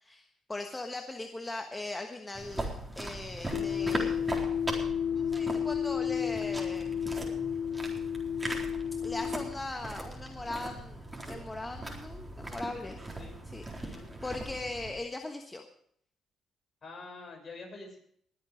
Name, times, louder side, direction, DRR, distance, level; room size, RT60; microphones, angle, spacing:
voice 1, 0.0-4.2 5.1-6.9 9.0-13.0 13.5-15.7, left 2 dB, 20° left, 4 dB, 1.3 m, -40 dB
sound 1, 2.4-14.9, right 1 dB, 15° right, 4.1 m, -40 dB
sound 2, 3.5-9.6, left 8 dB, 85° left, 0.4 m, -32 dB
voice 2, 13.8-14.1 16.8-18.0, left 3 dB, 45° left, 1 dB, 6.6 m, -46 dB
21.0 x 8.2 x 5.1 m, 0.66 s
cardioid pair, 75°, 0 cm